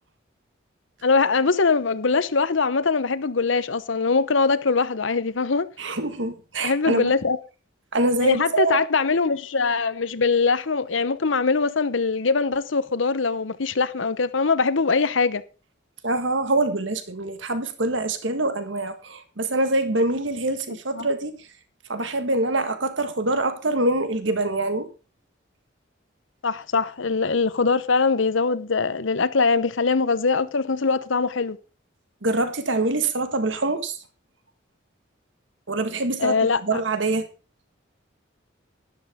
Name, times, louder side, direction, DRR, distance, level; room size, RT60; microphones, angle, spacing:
voice 1, 1.0-5.7 6.6-7.4 8.2-15.4 20.9-21.1 26.4-31.6 36.2-36.8, left 4 dB, 80° left, 0.9 m, -22 dB
voice 2, 5.8-7.1 7.9-8.8 16.0-21.4 21.9-24.9 32.2-34.0 35.7-36.4 36.6-37.3, right 2 dB, 75° right, 1.7 m, -24 dB
12.5 x 11.5 x 3.6 m
head